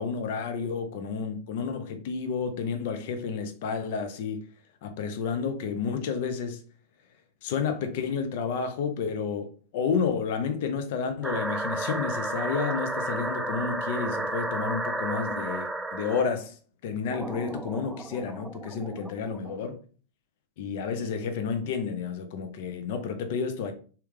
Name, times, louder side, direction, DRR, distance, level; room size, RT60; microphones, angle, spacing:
voice 1, 0.0-4.4 4.8-6.6 7.4-16.6 16.8-19.8 20.6-23.7, left 6 dB, 50° left, 0.6 m, -31 dB
sound 1, 11.2-16.3 17.1-19.5, right 2 dB, 10° right, 0.4 m, -32 dB
3.6 x 2.8 x 3.5 m
figure-of-eight pair, 90°, 0 cm